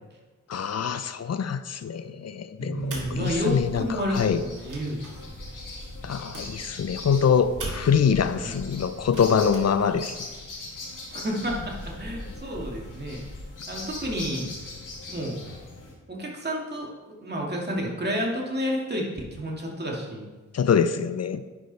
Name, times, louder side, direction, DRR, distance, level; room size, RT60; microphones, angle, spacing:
voice 1, 0.5-4.4 6.0-10.1 20.5-21.4, left 7 dB, 50° left, 12 dB, 0.6 m, -24 dB
voice 2, 2.6-5.2 8.4-8.5 11.1-13.2 13.7-14.4 15.1-15.4 16.1-20.3, equal, 30° right, -2 dB, 2.3 m, -30 dB
sound 1, 2.8-4.0 4.4-8.2 9.0-9.6, right 3 dB, 70° right, 2.2 m, -41 dB
sound 2, 3.2-15.9, left 2 dB, 75° left, 2.3 m, -39 dB
10.5 x 5.1 x 4.1 m, 1.3 s
cardioid pair, 60°, 32 cm